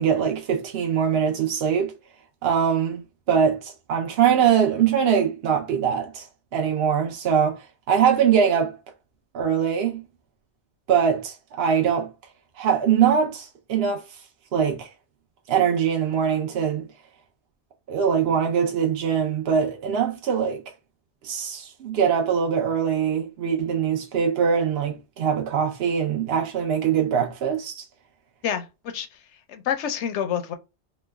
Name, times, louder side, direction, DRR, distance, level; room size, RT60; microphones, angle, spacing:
voice 1, 0.0-1.9 2.4-3.0 3.3-6.3 6.5-8.8 9.3-10.0 10.9-12.1 12.6-14.0 14.5-14.9 15.5-16.9 17.9-20.6 21.2-27.8, right 7 dB, 65° right, 0.8 m, -22 dB
voice 2, 28.4-29.2 29.5-30.5, left 8 dB, 80° left, 0.9 m, -28 dB
3.0 x 2.2 x 3.3 m
omnidirectional pair, 1.2 m